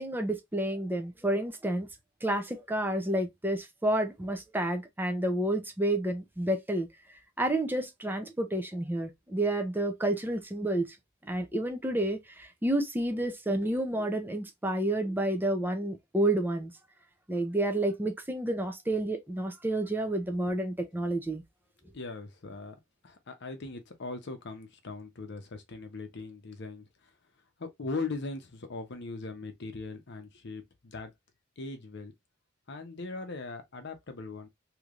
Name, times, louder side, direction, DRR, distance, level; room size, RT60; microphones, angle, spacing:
voice 1, 0.0-1.9 2.2-6.9 7.4-11.0 11.2-16.7 17.3-21.4, right 1 dB, 10° right, 0.6 m, -30 dB
voice 2, 21.9-26.9 27.6-31.1 31.6-32.1 32.7-34.5, left 3 dB, 55° left, 0.8 m, -40 dB
3.3 x 2.9 x 2.4 m
head